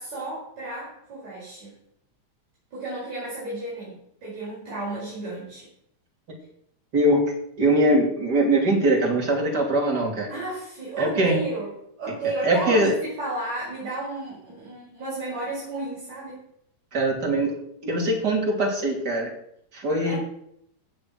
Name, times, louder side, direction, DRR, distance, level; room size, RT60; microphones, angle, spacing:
voice 1, 0.0-1.7 2.7-5.7 10.3-11.7 12.0-16.4 20.0-20.2, right 2 dB, 60° right, -8 dB, 6.3 m, -32 dB
voice 2, 6.9-7.2 7.6-10.3 11.0-11.4 12.4-12.9 16.9-17.6 17.8-19.3 19.7-20.1, right 1 dB, 30° right, 0 dB, 3.2 m, -22 dB
17.0 x 6.7 x 5.9 m, 0.73 s
omnidirectional pair, 3.6 m